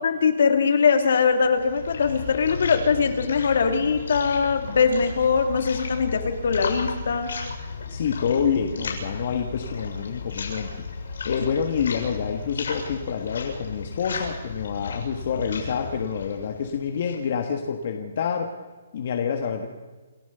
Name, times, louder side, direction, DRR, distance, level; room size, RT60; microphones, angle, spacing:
voice 1, 0.0-7.3, left 5 dB, 60° left, 6 dB, 2.7 m, -21 dB
sound 1, 1.3-17.3, left 4 dB, 75° left, 7.2 m, -34 dB
voice 2, 7.9-10.7 11.2-18.5 18.9-19.7, left 7 dB, 40° left, 3 dB, 1.6 m, -27 dB
28.5 x 14.0 x 6.9 m, 1.3 s
hypercardioid pair, 170°, 0 cm